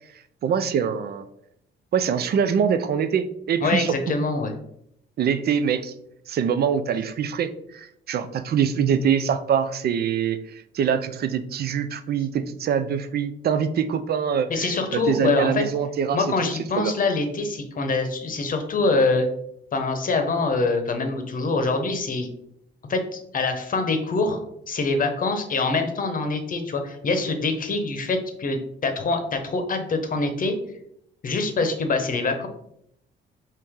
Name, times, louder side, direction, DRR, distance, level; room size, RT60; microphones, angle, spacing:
voice 1, 0.4-1.3 1.9-4.2 5.2-5.9 6.3-16.5 16.8-16.9, right 7 dB, 55° right, 11 dB, 0.4 m, -24 dB
voice 2, 3.6-4.5 14.5-15.6 16.1-19.3 19.7-22.3 22.9-24.4 24.7-30.6 31.2-32.5, left 3 dB, 45° left, 6 dB, 0.8 m, -24 dB
4.7 x 2.9 x 3.6 m, 0.74 s
cardioid pair, 90°, 20 cm